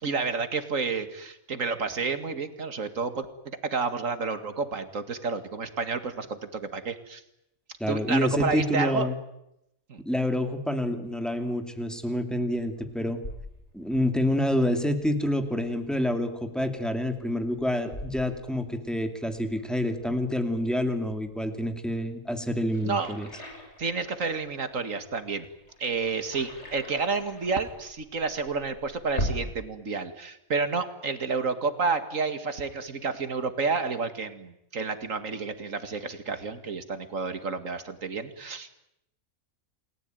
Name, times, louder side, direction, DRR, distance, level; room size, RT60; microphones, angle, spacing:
voice 1, 0.0-7.2 7.9-9.1 9.9-10.0 22.8-23.1 23.8-25.5 25.8-38.7, right 4 dB, 65° right, 10 dB, 2.4 m, -30 dB
voice 2, 7.8-9.2 10.0-13.2 13.7-23.3, left 1 dB, ahead, 6 dB, 2.6 m, -28 dB
sound 1, 11.7-29.5, equal, 50° left, 6.2 m, -42 dB
29.0 x 19.5 x 9.3 m, 0.84 s
omnidirectional pair, 1.5 m